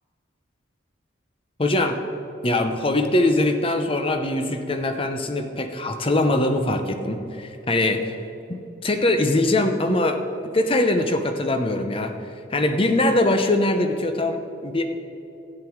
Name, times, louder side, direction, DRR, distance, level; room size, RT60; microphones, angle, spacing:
voice 1, 1.6-2.0 2.4-8.1 8.5-12.1 12.5-14.8, left 1 dB, 30° left, 6 dB, 0.7 m, -22 dB
13.0 x 8.9 x 4.6 m, 2.8 s
head